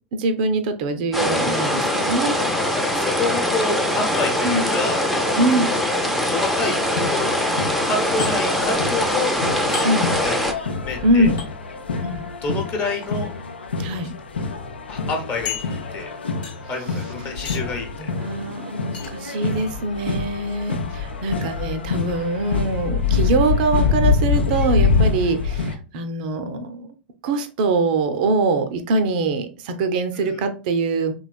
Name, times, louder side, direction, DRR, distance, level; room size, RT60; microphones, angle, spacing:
voice 1, 0.1-2.4 4.4-4.8 5.3-5.8 9.8-10.1 11.0-11.4 12.0-12.2 13.8-14.1 18.0-26.9 27.2-31.1, right 2 dB, 55° right, 8 dB, 0.5 m, -23 dB
sound 1, 1.1-10.5, left 1 dB, ahead, 0.5 m, -22 dB
voice 2, 2.7-5.0 6.1-7.3 7.8-9.8 10.2-10.4 10.8-11.3 12.4-13.3 14.9-15.6 15.9-16.1 16.7-18.1 30.2-30.3, left 3 dB, 35° left, 1 dB, 0.8 m, -28 dB
sound 2, 5.4-6.0 8.2-8.3 9.7-9.9 11.4-11.5 12.8-13.1 13.9-14.0 14.3-14.4 15.5-16.1 16.4-16.8 17.5-17.8 18.9-19.1, left 7 dB, 65° left, 0.9 m, -33 dB
sound 3, 6.7-25.8, left 4 dB, 85° left, 0.5 m, -26 dB
3.1 x 2.9 x 2.3 m, 0.35 s
figure-of-eight pair, 90°, 6 cm